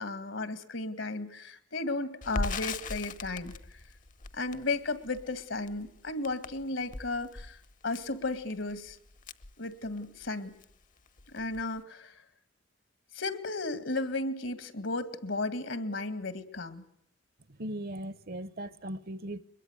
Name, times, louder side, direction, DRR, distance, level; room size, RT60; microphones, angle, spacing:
voice 1, 0.0-3.8 4.3-7.6 7.8-9.0 9.6-10.5 11.3-12.2 13.1-16.9, left 2 dB, 75° left, 2.2 m, -34 dB
Crackle, 2.2-10.3 10.6-10.7 11.1-11.8, left 3 dB, 45° left, 0.9 m, -40 dB
voice 2, 17.5-19.4, right 1 dB, 50° right, 0.9 m, -38 dB
23.0 x 21.5 x 9.5 m
head